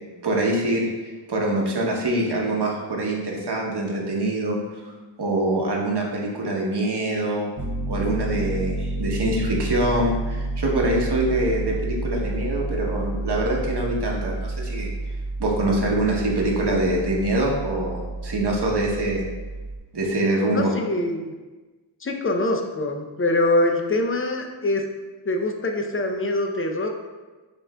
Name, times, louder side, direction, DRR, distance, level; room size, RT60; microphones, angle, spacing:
voice 1, 0.2-4.6 5.2-7.5 7.9-14.9 15.4-19.2 19.9-20.7, right 1 dB, 55° right, -1 dB, 1.0 m, -24 dB
Piano, 7.6-19.8, right 2 dB, 25° right, 0.7 m, -30 dB
voice 2, 20.5-21.3 22.0-24.8 25.3-26.9, left 2 dB, 25° left, 3 dB, 0.5 m, -24 dB
6.9 x 2.5 x 2.2 m, 1.2 s
cardioid pair, 45°, 49 cm